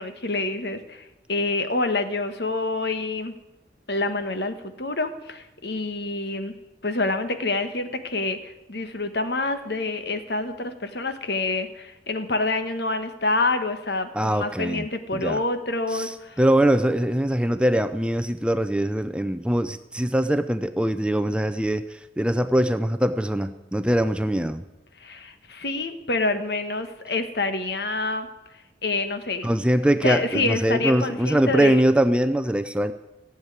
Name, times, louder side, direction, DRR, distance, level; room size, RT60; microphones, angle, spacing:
voice 1, 0.0-3.3 3.9-6.5 6.8-16.4 25.0-28.3 28.8-29.5 29.8-31.8, left 2 dB, 65° left, 9 dB, 1.3 m, -27 dB
voice 2, 14.1-14.9 15.1-15.4 15.9-24.6 29.4-32.9, right 1 dB, 5° right, 10 dB, 0.5 m, -22 dB
16.0 x 7.3 x 9.3 m, 0.99 s
head